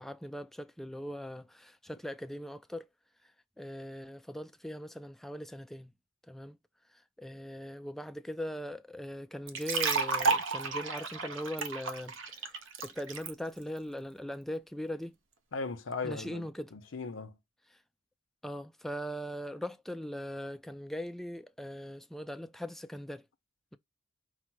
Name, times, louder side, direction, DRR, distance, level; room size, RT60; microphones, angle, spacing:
voice 1, 0.0-2.9 3.6-5.9 6.3-6.6 7.2-12.5 12.8-15.2 16.0-16.7 18.4-23.3, equal, ahead, 0.3 m, -40 dB
sound 1, 9.5-13.3, right 4 dB, 70° right, 0.7 m, -32 dB
voice 2, 15.5-17.4, left 4 dB, 75° left, 0.7 m, -38 dB
4.9 x 2.1 x 4.4 m
head